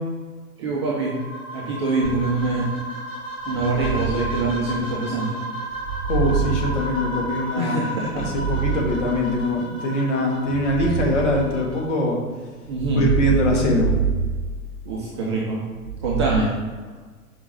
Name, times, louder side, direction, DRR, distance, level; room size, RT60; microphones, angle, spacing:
voice 1, 0.6-1.1 1.5-2.7 3.5-5.4 7.6-8.3 12.7-13.1 14.8-15.6 16.0-16.5, right 3 dB, 20° right, -4 dB, 0.6 m, -24 dB
sound 1, 0.8-11.8, equal, 10° left, 1.8 m, -34 dB
sound 2, 2.0-2.7 3.5-5.2 5.8-7.6 8.1-9.7 10.5-12.1 12.7-15.2 15.8-16.4, right 6 dB, 90° right, 0.6 m, -27 dB
voice 2, 6.1-7.8 8.1-12.2 13.0-13.9, left 1 dB, 50° left, -1 dB, 1.9 m, -23 dB
5.6 x 5.0 x 4.1 m, 1.4 s
figure-of-eight pair, 120°, 46 cm